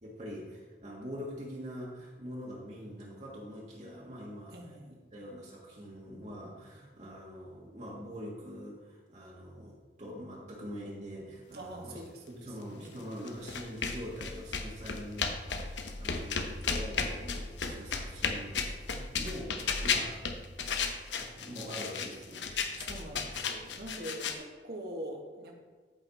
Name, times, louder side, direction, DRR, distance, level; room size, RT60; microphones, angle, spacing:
voice 1, 0.0-4.6 5.1-12.0 12.3-20.2 20.9-22.5, equal, 40° right, -4 dB, 1.7 m, -44 dB
voice 2, 4.5-5.0 11.5-12.5 12.8-13.1 21.2-21.4 22.7-25.5, right 1 dB, 60° right, 1 dB, 1.6 m, -44 dB
sound 1, 13.3-24.3, left 5 dB, 85° left, 1.0 m, -34 dB
13.5 x 5.6 x 4.1 m, 1.4 s
head